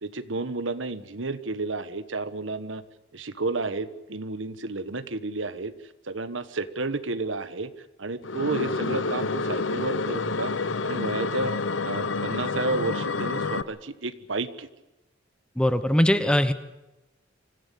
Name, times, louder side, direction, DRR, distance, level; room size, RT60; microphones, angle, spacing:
voice 1, 0.0-2.8 3.1-5.7 6.1-7.7 8.0-10.5 10.8-11.5 11.8-14.7, right 3 dB, 80° right, 12 dB, 1.4 m, -31 dB
sound 1, 8.2-13.6, left 4 dB, 80° left, 1.0 m, -28 dB
voice 2, 15.6-16.5, equal, 5° left, 12 dB, 1.1 m, -21 dB
25.5 x 16.0 x 8.4 m, 1.0 s
head